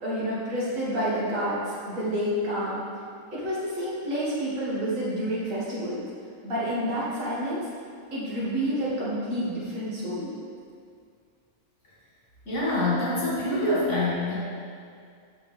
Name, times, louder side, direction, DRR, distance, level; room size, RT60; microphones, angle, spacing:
voice 1, 0.0-2.8 3.3-6.0 6.4-7.7 8.1-10.4, equal, 65° right, -8 dB, 2.1 m, -29 dB
voice 2, 12.5-14.4, left 1 dB, 60° left, -8 dB, 2.3 m, -25 dB
7.7 x 6.3 x 3.4 m, 2.2 s
omnidirectional pair, 1.4 m